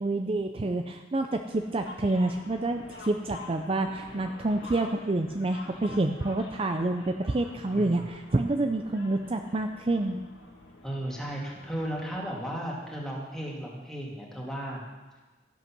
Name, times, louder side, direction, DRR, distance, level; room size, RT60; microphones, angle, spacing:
voice 1, 0.0-10.2, right 2 dB, 30° right, 5 dB, 0.5 m, -28 dB
sound 1, 1.5-12.2, left 2 dB, 85° left, 2.0 m, -47 dB
voice 2, 7.7-8.1 10.8-14.8, right 1 dB, 5° left, -3 dB, 2.3 m, -35 dB
13.5 x 8.1 x 6.0 m, 1.2 s
head